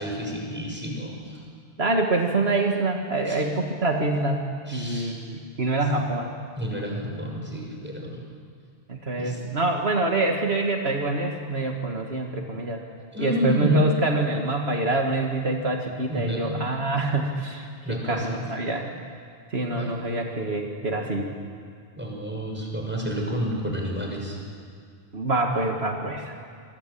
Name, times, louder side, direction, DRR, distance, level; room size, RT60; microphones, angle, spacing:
voice 1, 0.0-1.5 3.3-3.4 4.7-5.2 5.8-5.9 6.6-8.2 9.2-9.4 13.1-14.0 16.1-16.6 17.8-18.6 19.7-19.9 22.0-24.4, equal, 10° right, 0 dB, 6.1 m, -30 dB
voice 2, 1.8-4.4 4.7-6.3 8.9-12.8 13.2-18.9 19.5-21.3 25.1-26.3, right 2 dB, 70° right, 2 dB, 2.2 m, -26 dB
28.0 x 22.5 x 8.6 m, 2.1 s
omnidirectional pair, 1.1 m